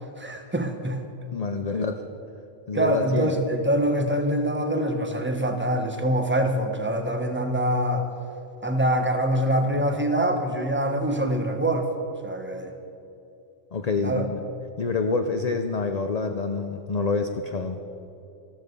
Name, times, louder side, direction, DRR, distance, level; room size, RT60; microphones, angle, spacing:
voice 1, 0.2-1.0 2.7-8.1 8.6-11.9 12.2-12.7 14.0-14.3, right 1 dB, 10° right, 5 dB, 1.1 m, -24 dB
voice 2, 1.3-2.0 2.7-3.3 13.7-14.4 14.8-17.8, left 4 dB, 45° left, 6 dB, 0.6 m, -27 dB
14.0 x 13.5 x 5.4 m, 2.8 s
omnidirectional pair, 1.2 m